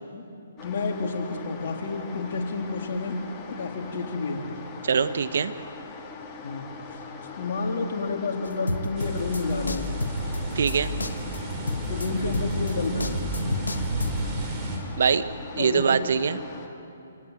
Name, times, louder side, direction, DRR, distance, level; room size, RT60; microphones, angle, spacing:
voice 1, 0.6-3.2 3.5-4.4 6.4-6.7 6.9-7.0 7.4-9.9 11.9-13.1 15.6-15.9, left 3 dB, 55° left, 1 dB, 3.5 m, -30 dB
sound 1, 0.6-16.7, left 4 dB, 25° left, 2.6 m, -41 dB
voice 2, 4.8-5.5 10.5-10.9 15.0-15.3 15.6-16.4, right 6 dB, 65° right, 12 dB, 1.2 m, -23 dB
sound 2, 8.4-14.3, left 2 dB, 85° left, 1.4 m, -31 dB
sound 3, 9.0-14.8, right 3 dB, 25° right, 4.4 m, -33 dB
27.0 x 18.0 x 9.2 m, 2.7 s
figure-of-eight pair, 135°, 0 cm